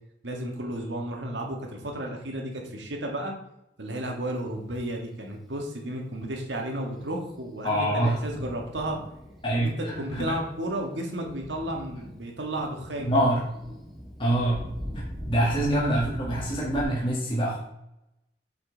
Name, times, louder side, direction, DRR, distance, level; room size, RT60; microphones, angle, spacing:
voice 1, 0.2-3.3 3.8-9.0 9.5-13.1, right 1 dB, 85° right, 1 dB, 1.7 m, -33 dB
Thunder, 7.1-16.8, equal, ahead, 1.6 m, -41 dB
voice 2, 7.6-8.2 9.4-10.3 13.0-13.4 14.2-14.6 14.9-17.6, right 1 dB, 30° left, -5 dB, 1.8 m, -25 dB
7.7 x 5.4 x 4.0 m, 0.83 s
head